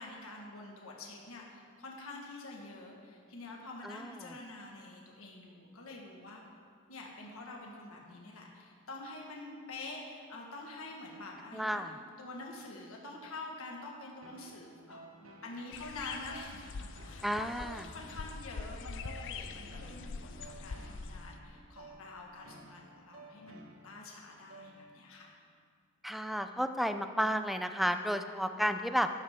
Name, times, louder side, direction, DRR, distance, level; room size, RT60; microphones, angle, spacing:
voice 1, 0.0-6.4 6.9-11.8 12.2-25.3, left 2 dB, 75° left, -1 dB, 1.6 m, -47 dB
voice 2, 3.8-4.3 11.5-12.0 17.2-17.8 26.0-29.1, equal, ahead, 8 dB, 0.4 m, -32 dB
sound 1, 14.2-25.2, right 2 dB, 75° right, 1.2 m, -55 dB
sound 2, 15.7-21.4, left 4 dB, 60° left, 0.5 m, -44 dB
13.0 x 11.5 x 3.7 m, 2.1 s
head